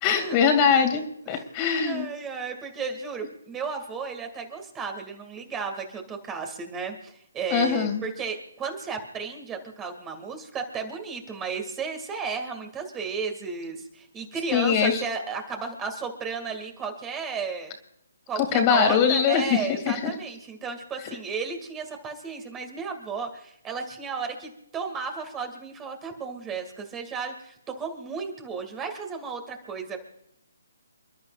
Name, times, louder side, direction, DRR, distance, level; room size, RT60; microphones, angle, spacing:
voice 1, 0.0-2.1 7.5-8.0 14.5-15.0 18.4-19.6 19.9-20.1, left 7 dB, 25° left, 5 dB, 2.6 m, -22 dB
voice 2, 1.8-17.7 18.3-30.0, right 5 dB, 15° right, 5 dB, 2.2 m, -34 dB
29.5 x 12.0 x 2.5 m, 0.78 s
figure-of-eight pair, 145°, 0 cm